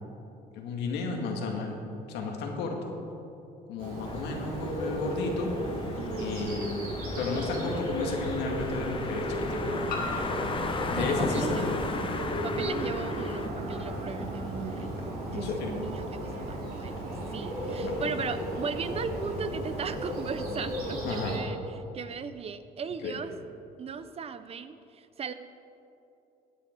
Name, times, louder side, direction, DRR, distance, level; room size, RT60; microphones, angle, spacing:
voice 1, 0.5-1.8 2.1-2.9 3.7-5.5 6.2-6.7 7.2-9.8 10.9-11.8 15.3-15.7 17.8-18.0 21.0-21.4 23.0-23.2, left 4 dB, 90° left, 2 dB, 1.9 m, -33 dB
Bird, 3.8-21.4, right 1 dB, 65° right, 3.3 m, -34 dB
sound 1, 4.1-13.5, left 3 dB, 30° left, 1.0 m, -36 dB
sound 2, 5.9-6.0 7.7-7.8 9.9-12.4, left 3 dB, 70° left, 2.4 m, -41 dB
voice 2, 6.0-6.4 10.3-11.8 12.4-17.0 17.3-23.3 23.8-25.3, right 6 dB, 35° right, 12 dB, 0.6 m, -37 dB
15.5 x 9.2 x 4.5 m, 2.8 s
cardioid pair, 110°, 17 cm